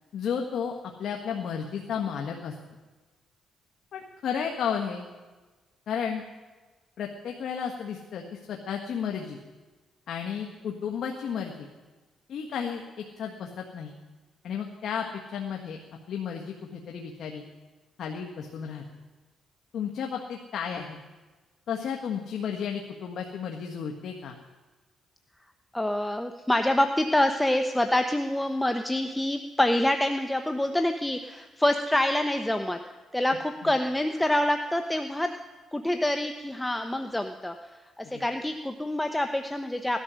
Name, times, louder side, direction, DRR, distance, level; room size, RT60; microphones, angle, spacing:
voice 1, 0.1-2.5 3.9-5.0 5.9-6.2 7.0-9.4 10.1-11.7 12.3-13.9 14.4-15.8 16.1-17.5 18.0-18.8 19.7-21.0 21.7-24.3 33.6-33.7 38.0-38.2, left 7 dB, 65° left, 1 dB, 1.5 m, -33 dB
voice 2, 25.7-32.8 33.1-35.3 35.7-40.0, left 1 dB, 10° left, 6 dB, 0.8 m, -26 dB
17.5 x 12.0 x 6.3 m, 1.3 s
cardioid pair, 90°, 0 cm